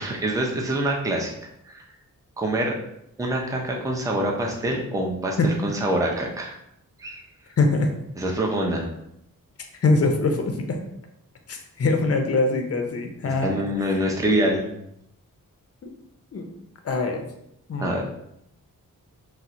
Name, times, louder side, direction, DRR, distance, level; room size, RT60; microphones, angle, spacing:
voice 1, 0.0-1.3 1.6-1.8 2.4-2.8 3.2-6.6 7.0-7.2 8.2-8.9 13.2-14.7 17.8-18.0, right 1 dB, 10° right, 0 dB, 0.5 m, -25 dB
voice 2, 7.6-7.9 9.8-10.8 11.5-13.5 16.3-16.5 16.8-17.3 17.7-18.0, left 3 dB, 45° left, 4 dB, 0.5 m, -23 dB
4.2 x 2.0 x 2.5 m, 0.78 s
wide cardioid pair, 85°, 34 cm